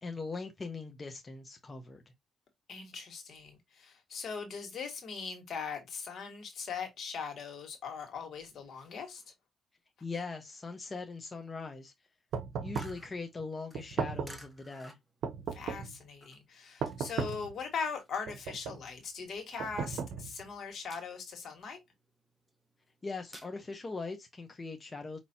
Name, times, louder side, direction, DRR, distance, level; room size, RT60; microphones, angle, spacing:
voice 1, 0.0-2.0 10.0-11.9 12.6-15.0 23.0-25.2, left 4 dB, 30° left, 0.8 m, -41 dB
voice 2, 2.7-9.2 15.5-21.8, left 5 dB, 60° left, 1.7 m, -40 dB
sound 1, 12.3-13.1 13.7-14.5 15.2-16.0 16.8-17.5 18.3-18.9 19.6-20.5, right 6 dB, 75° right, 0.7 m, -36 dB
sound 2, 12.7-17.6 17.9-19.8 20.2-20.5 20.8-21.4 21.8-23.5, equal, ahead, 1.2 m, -54 dB
5.3 x 3.0 x 2.8 m
cardioid pair, 90°, 0 cm